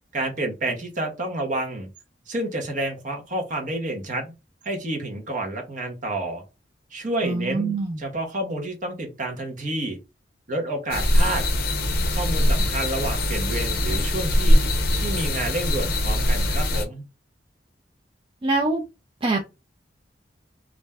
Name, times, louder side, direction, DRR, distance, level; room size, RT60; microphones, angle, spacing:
voice 1, 0.1-1.9 2.3-4.3 4.6-6.4 6.9-10.0 10.5-11.4 12.1-14.7 14.9-17.0, right 1 dB, 50° right, 3 dB, 0.8 m, -29 dB
voice 2, 7.2-8.0 18.4-18.8 19.2-19.4, right 3 dB, 30° right, 0 dB, 0.4 m, -24 dB
sound 1, 10.9-16.9, left 1 dB, 60° left, 0.6 m, -22 dB
2.5 x 2.1 x 3.4 m, 0.26 s
head